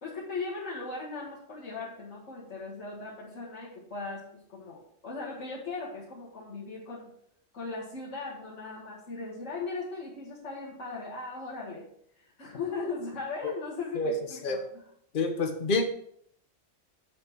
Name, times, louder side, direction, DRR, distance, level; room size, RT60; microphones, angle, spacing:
voice 1, 0.0-7.1 7.5-11.9 12.2-14.8, left 3 dB, 75° left, -7 dB, 2.2 m, -38 dB
voice 2, 15.1-15.8, left 3 dB, 45° left, 5 dB, 1.1 m, -27 dB
7.6 x 6.2 x 4.6 m, 0.67 s
omnidirectional pair, 1.3 m